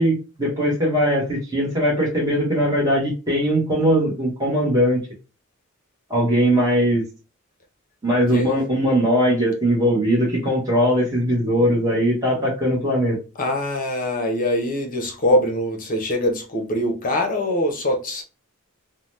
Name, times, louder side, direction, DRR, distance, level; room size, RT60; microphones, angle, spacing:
voice 1, 0.0-5.0 6.1-7.0 8.0-13.2, equal, 15° right, 0.9 m, -20 dB
voice 2, 13.4-18.2, left 1 dB, 40° left, 0.6 m, -23 dB
2.8 x 2.0 x 3.0 m
head